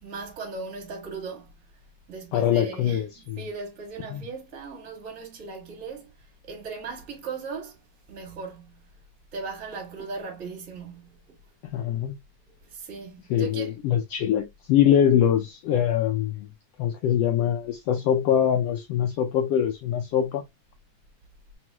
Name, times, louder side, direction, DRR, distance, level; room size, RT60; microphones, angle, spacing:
voice 1, 0.0-1.5 2.1-7.8 8.1-8.8 9.3-11.4 12.6-13.7, right 4 dB, 30° right, 1.7 m, -38 dB
voice 2, 2.3-3.4 4.1-4.2 11.7-12.2 13.3-16.5 16.8-20.4, left 9 dB, 90° left, 1.3 m, -23 dB
4.6 x 4.1 x 2.2 m
omnidirectional pair, 3.6 m